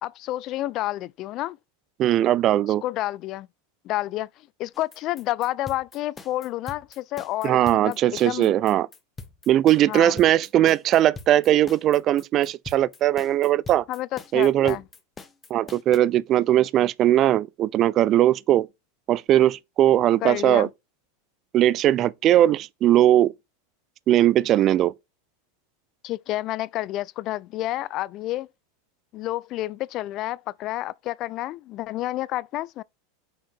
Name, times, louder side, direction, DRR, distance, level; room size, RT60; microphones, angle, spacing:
voice 1, 0.0-1.6 2.8-3.5 3.8-4.3 4.6-8.5 9.9-10.2 13.9-14.8 20.2-20.7 26.0-28.5 29.1-32.8, left 15 dB, 45° left, 0.3 m, -30 dB
voice 2, 2.0-2.8 7.4-8.9 9.5-13.8 14.3-14.8 15.5-18.7 19.1-20.7 21.5-23.3 24.1-24.9, right 12 dB, 40° right, 0.4 m, -19 dB
sound 1, 4.7-16.0, left 4 dB, 20° left, 1.1 m, -42 dB
6.1 x 4.4 x 4.5 m
hypercardioid pair, 95°, 0 cm